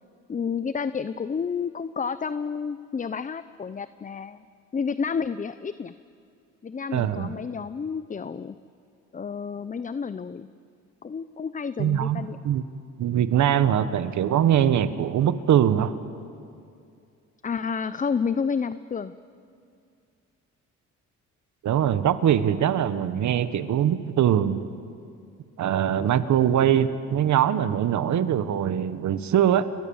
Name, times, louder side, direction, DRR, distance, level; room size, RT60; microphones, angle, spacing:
voice 1, 0.3-4.4 4.7-5.9 6.6-8.6 9.1-10.5 11.0-12.4 17.4-19.1, left 6 dB, 25° left, 14 dB, 0.6 m, -30 dB
voice 2, 6.9-7.3 11.8-12.6 13.0-16.0 21.6-24.7 25.6-29.7, right 10 dB, 70° right, 12 dB, 1.4 m, -22 dB
28.5 x 23.0 x 7.2 m, 2.5 s
cardioid pair, 90°, 30 cm